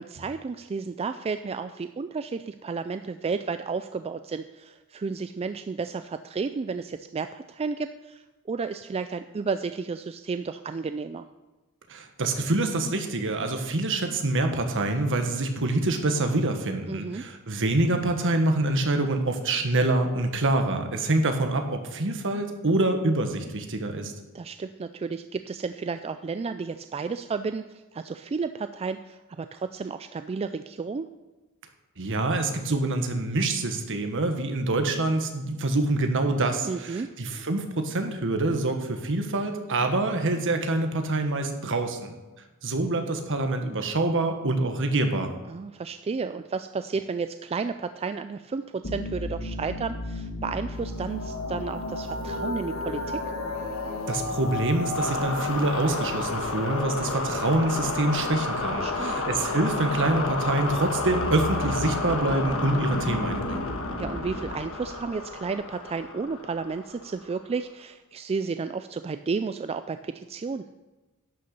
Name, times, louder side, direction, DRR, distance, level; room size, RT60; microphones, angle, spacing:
voice 1, 0.0-11.2 16.9-17.2 24.3-31.0 36.6-37.1 45.5-53.2 58.8-59.2 64.0-70.7, right 4 dB, 25° right, 10 dB, 0.3 m, -32 dB
voice 2, 11.9-24.1 32.0-42.1 42.6-45.3 54.1-63.7, right 2 dB, 60° right, 6 dB, 1.4 m, -26 dB
sound 1, 48.8-67.3, left 2 dB, 65° left, 1.5 m, -31 dB
11.0 x 6.8 x 6.5 m, 1.2 s
head